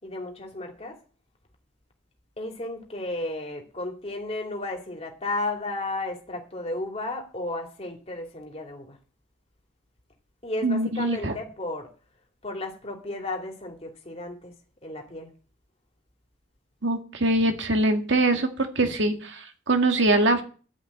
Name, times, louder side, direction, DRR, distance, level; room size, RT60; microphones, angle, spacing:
voice 1, 0.0-1.0 2.4-9.0 10.4-11.9 12.4-14.5 14.8-15.3, left 2 dB, 35° left, 2.7 m, -33 dB
voice 2, 10.6-11.3 16.8-20.4, right 2 dB, 70° right, 1.9 m, -23 dB
12.0 x 5.6 x 8.7 m
head